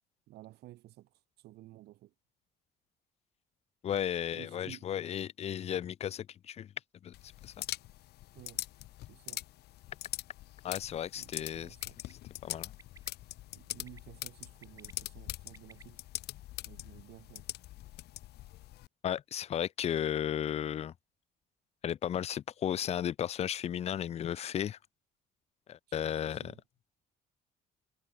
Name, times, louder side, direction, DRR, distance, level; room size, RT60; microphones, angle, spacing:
voice 1, 0.3-2.1 4.3-4.9 8.3-8.6 9.1-9.4 11.1-12.0 13.1-16.0 16.6-17.4 25.9-26.6, right 16 dB, 75° right, 1.3 m, -54 dB
voice 2, 3.8-6.7 7.0-7.1 7.4-7.5 10.6-11.8 12.4-12.7 19.0-20.9 21.8-24.8 25.7-26.5, left 10 dB, 40° left, 0.5 m, -34 dB
sound 1, 7.1-18.9, left 16 dB, 75° left, 1.2 m, -43 dB
Bird, 11.8-12.1 12.8-13.1 13.7-14.0 14.5-15.8, right 4 dB, 20° right, 1.6 m, -56 dB
cardioid pair, 110°, 17 cm